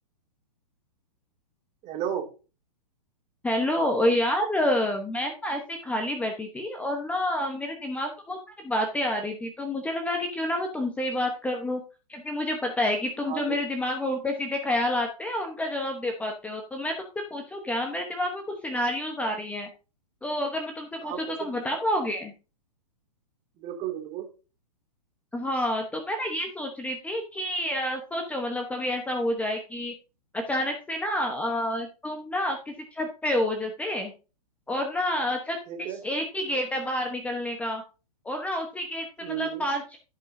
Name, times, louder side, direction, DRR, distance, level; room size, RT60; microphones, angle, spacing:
voice 1, 1.8-2.3 13.3-13.6 21.0-21.6 23.6-24.3 35.7-36.0 39.2-39.7, right 10 dB, 30° right, 3 dB, 2.4 m, -33 dB
voice 2, 3.4-8.4 8.6-11.8 12.1-19.7 20.2-22.3 25.3-29.9 30.3-34.1 34.7-35.6 36.0-37.8 38.2-40.0, left 1 dB, 5° left, 3 dB, 1.0 m, -29 dB
15.5 x 5.6 x 2.7 m, 0.33 s
hypercardioid pair, 130°, 21 cm